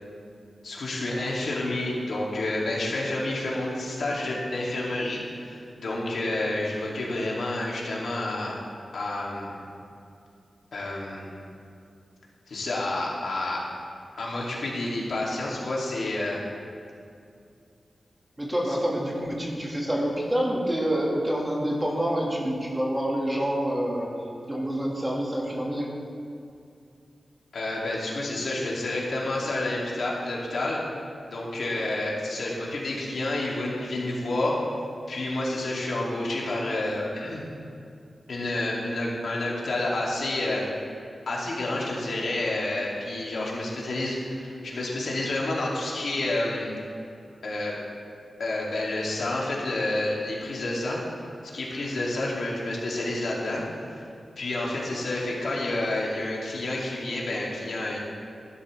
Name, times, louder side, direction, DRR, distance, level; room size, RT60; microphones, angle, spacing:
voice 1, 0.6-8.5 8.9-9.5 10.7-11.3 12.5-13.6 14.2-16.4 27.5-30.8 31.3-34.6 35.1-37.4 38.3-40.6 41.3-46.7 47.4-47.7 48.4-51.0 51.4-53.6 54.4-58.0, left 2 dB, 70° left, -4 dB, 2.4 m, -29 dB
voice 2, 18.4-24.1 24.5-25.9, equal, 15° right, -3 dB, 1.7 m, -27 dB
15.0 x 12.0 x 3.3 m, 2.5 s
wide cardioid pair, 175°, 0 cm